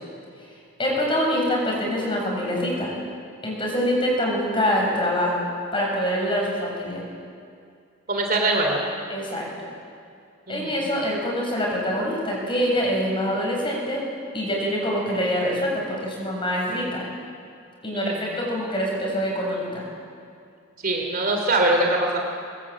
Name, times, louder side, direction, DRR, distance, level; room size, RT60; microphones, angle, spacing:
voice 1, 0.8-2.9 3.4-5.4 5.7-7.0 9.1-9.5 10.5-14.0 14.3-17.1 17.8-19.9, equal, 25° left, -2 dB, 7.1 m, -25 dB
voice 2, 8.1-8.8 10.5-10.7 17.9-18.1 20.8-22.2, right 2 dB, 40° right, 2 dB, 3.1 m, -22 dB
22.0 x 21.5 x 8.9 m, 2.4 s
head